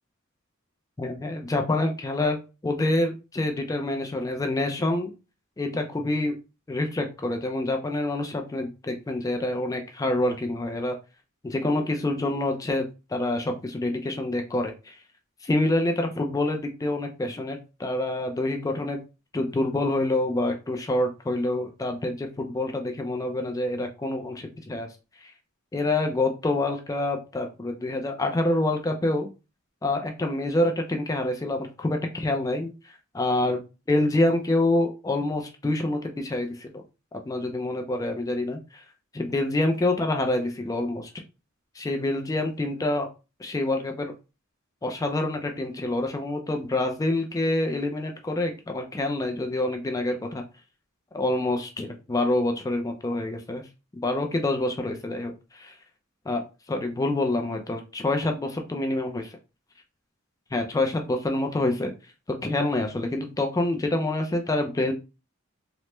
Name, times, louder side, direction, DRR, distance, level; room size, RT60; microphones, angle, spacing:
voice 1, 1.0-5.1 5.6-6.4 6.7-11.0 11.4-15.0 15.4-19.0 19.3-24.9 25.2-25.3 25.7-29.3 29.8-33.6 33.9-36.7 37.3-38.8 39.1-41.1 41.8-43.1 43.4-44.1 44.8-50.4 51.1-53.6 54.0-55.7 56.3-56.4 56.7-59.4 60.5-61.9 62.4-64.9, left 2 dB, 15° left, 4 dB, 0.3 m, -27 dB
3.2 x 2.1 x 2.9 m, 0.29 s
head